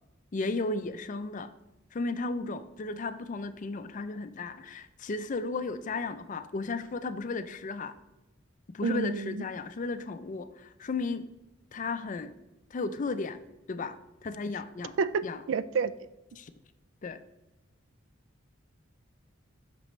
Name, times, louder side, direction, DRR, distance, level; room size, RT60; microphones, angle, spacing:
voice 1, 0.3-1.5 1.9-7.9 8.7-11.2 11.7-12.3 12.7-13.4 13.7-14.0 14.2-15.0 15.2-15.4 16.4-16.5 17.0-17.2, left 3 dB, 40° left, 0.4 m, -34 dB
voice 2, 8.8-9.4 15.0-15.9, right 5 dB, 65° right, 0.3 m, -29 dB
8.4 x 6.0 x 3.1 m
head